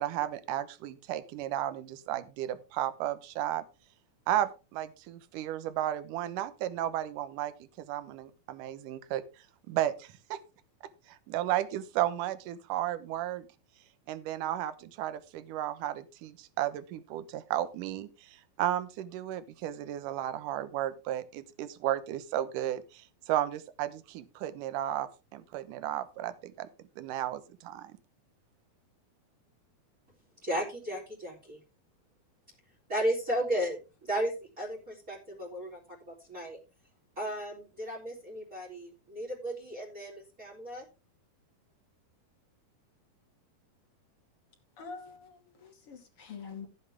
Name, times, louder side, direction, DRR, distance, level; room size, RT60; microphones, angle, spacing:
voice 1, 0.0-3.6 4.3-9.2 9.7-10.4 11.1-13.5 14.1-26.7 27.0-27.9, right 12 dB, 70° right, 2.3 m, -34 dB
voice 2, 30.4-31.6 32.9-35.8 36.1-36.6 37.2-40.8, right 1 dB, 25° right, 3.6 m, -34 dB
voice 3, 44.8-46.7, left 5 dB, 40° left, 3.0 m, -45 dB
14.5 x 7.9 x 3.5 m
omnidirectional pair, 4.4 m